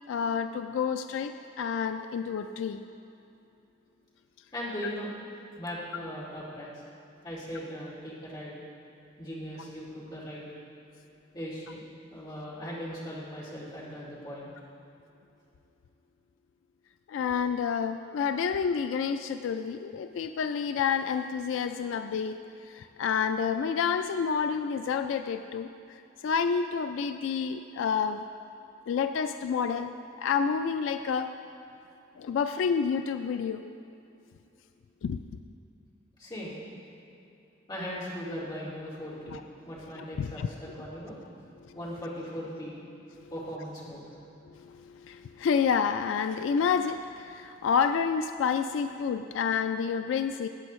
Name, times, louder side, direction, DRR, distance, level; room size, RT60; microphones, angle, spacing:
voice 1, 0.1-2.8 4.8-4.9 17.1-22.4 22.7-25.7 26.2-28.2 28.9-29.9 30.2-31.3 32.2-33.6 35.0-35.2 39.3-39.4 40.2-40.5 41.7-41.8 44.6-50.5, left 6 dB, 80° left, 8 dB, 0.3 m, -29 dB
voice 2, 4.5-5.1 5.6-6.8 7.2-8.5 9.2-10.4 11.3-11.8 12.1-14.5 36.2-36.6 37.7-41.2 41.7-42.8 43.3-44.1, equal, 25° left, -7 dB, 2.3 m, -39 dB
14.0 x 8.6 x 3.1 m, 2.8 s
head